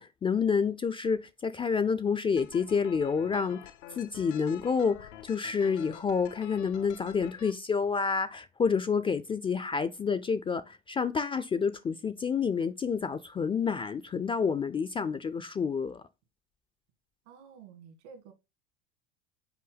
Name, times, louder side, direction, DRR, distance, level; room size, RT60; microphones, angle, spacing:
voice 1, 0.0-3.6 4.0-16.0, left 5 dB, 15° left, 0.3 m, -29 dB
sound 1, 2.4-7.5, left 12 dB, 75° left, 0.7 m, -49 dB
voice 2, 17.3-18.3, right 6 dB, 70° right, 1.9 m, -51 dB
5.7 x 4.4 x 3.9 m
hypercardioid pair, 90°, 35 cm